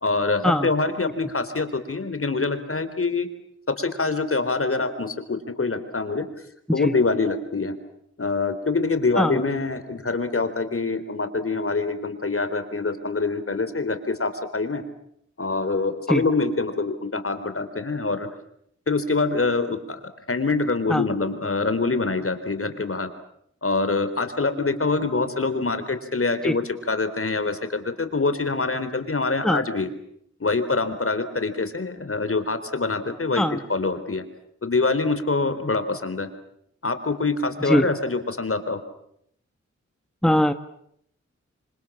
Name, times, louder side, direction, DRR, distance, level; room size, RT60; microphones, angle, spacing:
voice 1, 0.0-3.3 3.7-6.3 6.7-7.7 8.2-14.8 15.4-18.3 18.9-20.0 20.3-23.1 23.6-29.9 30.4-33.4 33.7-34.2 34.6-36.3 36.8-38.8, left 3 dB, 50° left, 10 dB, 3.9 m, -25 dB
voice 2, 40.2-40.5, left 1 dB, ahead, 9 dB, 1.4 m, -20 dB
28.0 x 25.5 x 7.4 m, 0.71 s
cardioid pair, 55°, 29 cm